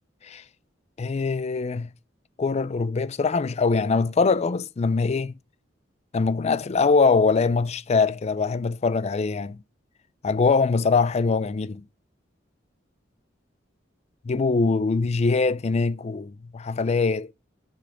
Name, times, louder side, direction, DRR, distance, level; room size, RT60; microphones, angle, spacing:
voice 1, 1.0-1.9 2.4-5.3 6.1-9.6 10.2-11.9 14.2-17.3, left 4 dB, 35° left, 0.4 m, -23 dB
6.9 x 5.4 x 4.9 m
head